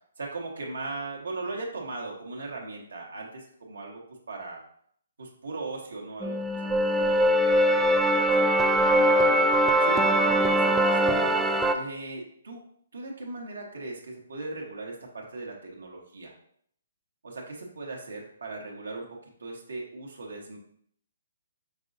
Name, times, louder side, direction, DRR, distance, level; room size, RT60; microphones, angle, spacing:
voice 1, 0.2-4.0 4.3-4.6 5.2-11.4 11.7-12.6 12.9-16.3 17.2-19.1 19.4-20.6, right 3 dB, 85° right, -1 dB, 1.0 m, -38 dB
sound 1, 6.2-11.7, right 1 dB, 10° right, 0.3 m, -22 dB
5.2 x 3.8 x 2.6 m, 0.66 s
hypercardioid pair, 145°, 0 cm